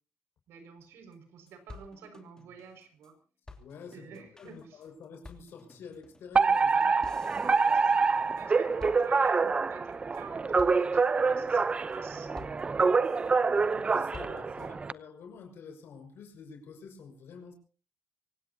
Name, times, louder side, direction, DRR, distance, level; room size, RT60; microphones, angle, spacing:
voice 1, 0.5-3.1 3.9-4.8 6.7-7.1 7.4-12.3 12.9-13.5 14.1-14.6, right 6 dB, 80° right, 6 dB, 5.9 m, -50 dB
sound 1, 0.8-0.9 1.1-1.2 1.5-3.1 3.5-8.5 8.8-9.5 9.9-10.2 10.6-11.1 11.5-12.0 12.3-13.3 13.7-14.7, left 3 dB, 15° left, 3.2 m, -51 dB
voice 2, 3.6-6.9 13.7-17.5, left 5 dB, 65° left, 4 dB, 6.0 m, -48 dB
Alarm, 6.3-14.9, right 4 dB, 25° right, 0.8 m, -26 dB
25.0 x 18.5 x 2.9 m, 0.38 s
cardioid pair, 110°, 4 cm